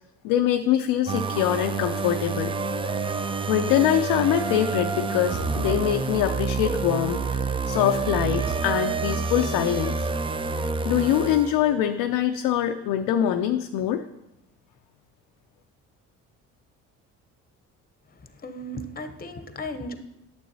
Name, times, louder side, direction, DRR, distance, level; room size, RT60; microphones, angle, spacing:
voice 1, 0.2-2.5 3.5-10.1 10.8-14.0, left 11 dB, 70° left, 6 dB, 0.5 m, -24 dB
sound 1, 1.1-11.9, right 4 dB, 15° right, 0.4 m, -28 dB
voice 2, 18.4-20.0, left 1 dB, 25° left, 9 dB, 0.8 m, -35 dB
9.4 x 6.8 x 2.7 m, 0.85 s
hypercardioid pair, 55°, 38 cm